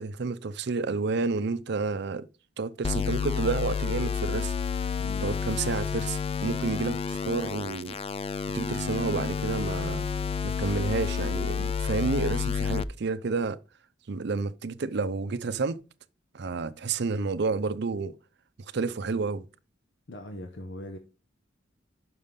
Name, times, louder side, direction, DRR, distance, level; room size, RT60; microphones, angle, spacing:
voice 1, 0.0-2.3 2.6-4.5 5.2-8.0 8.5-10.1 10.4-13.6 14.1-15.8 16.3-18.2 18.7-19.5, right 4 dB, 65° right, 0.5 m, -30 dB
sound 1, 2.8-12.8, left 6 dB, 30° left, 0.3 m, -30 dB
voice 2, 20.1-21.0, left 1 dB, 70° left, 0.8 m, -40 dB
6.2 x 5.6 x 5.2 m
head